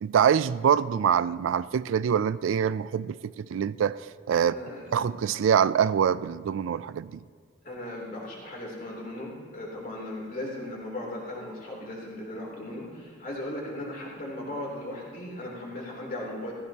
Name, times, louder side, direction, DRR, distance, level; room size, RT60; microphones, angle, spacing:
voice 1, 0.0-4.0 4.3-4.5 4.9-7.2, right 8 dB, 75° right, 17 dB, 0.3 m, -24 dB
voice 2, 4.4-4.9 7.6-16.5, left 1 dB, 45° left, -3 dB, 3.2 m, -37 dB
15.5 x 14.5 x 2.9 m, 2.1 s
head